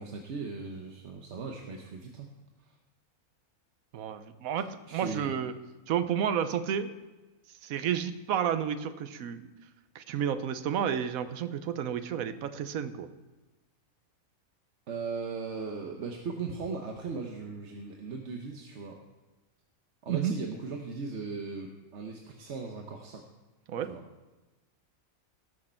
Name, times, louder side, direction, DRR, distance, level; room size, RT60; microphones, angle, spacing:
voice 1, 0.0-2.3 2.6-2.7 4.9-5.3 14.9-19.0 20.0-23.2 23.9-24.0, right 4 dB, 55° right, 2 dB, 1.1 m, -38 dB
voice 2, 3.9-5.5 5.9-6.9 7.6-9.5 9.9-13.1 20.1-20.3 23.7-23.9, right 8 dB, 75° right, 11 dB, 1.1 m, -31 dB
18.0 x 6.4 x 4.4 m, 1.2 s
omnidirectional pair, 1.5 m